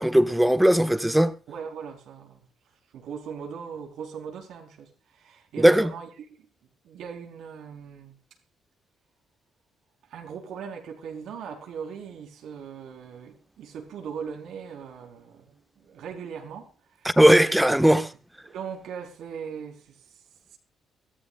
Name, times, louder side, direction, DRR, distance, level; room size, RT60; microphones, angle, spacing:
voice 1, 0.0-1.3 5.6-5.9 17.0-18.1, right 1 dB, 5° right, 1.5 m, -18 dB
voice 2, 1.5-2.4 2.9-6.1 6.4-6.5 6.8-8.1 10.1-17.1 17.4-17.6 18.4-20.0, right 7 dB, 80° right, 4.3 m, -39 dB
24.5 x 15.0 x 2.5 m
cardioid pair, 90°, 0 cm